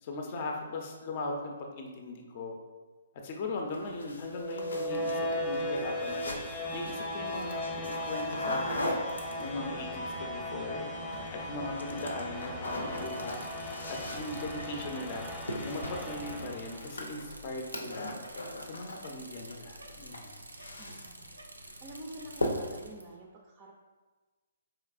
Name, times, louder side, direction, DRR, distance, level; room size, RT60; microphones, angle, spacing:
voice 1, 0.0-2.6 3.1-9.0 9.4-10.9 11.3-13.4 13.9-15.3 15.6-18.1 18.6-20.4, left 2 dB, 40° left, 2 dB, 0.6 m, -39 dB
sound 1, 3.7-9.8 10.9-11.4 11.7-19.5 19.8-21.3 21.6-21.9 22.3-22.9, left 1 dB, 80° left, 0.6 m, -40 dB
sound 2, 4.2-17.2, left 1 dB, 15° left, 0.8 m, -37 dB
Bicycle, 12.9-23.0, right 2 dB, 85° right, 0.5 m, -49 dB
voice 2, 20.8-21.3 21.8-23.7, right 1 dB, 25° right, -1 dB, 0.4 m, -47 dB
4.6 x 3.2 x 2.4 m, 1.3 s
figure-of-eight pair, 135°, 0 cm